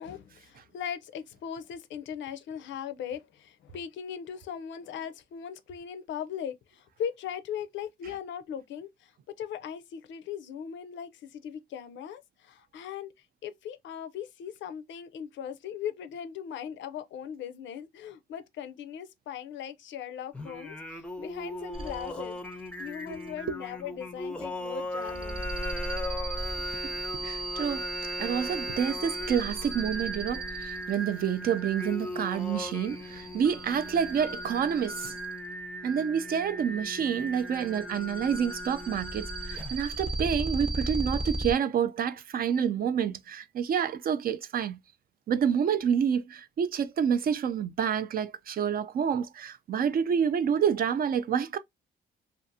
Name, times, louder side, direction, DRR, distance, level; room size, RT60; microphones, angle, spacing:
voice 1, 0.0-13.1 13.4-25.4, left 8 dB, 70° left, 0.5 m, -39 dB
Singing, 20.3-39.9, equal, 5° left, 0.5 m, -38 dB
sound 1, 21.7-22.3 22.7-23.2 25.0-35.5 37.4-41.5, right 2 dB, 30° right, 0.8 m, -36 dB
voice 2, 27.2-35.1 35.8-44.8 45.3-51.6, right 8 dB, 50° right, 0.4 m, -28 dB
2.5 x 2.4 x 2.6 m
cardioid pair, 90°, 20 cm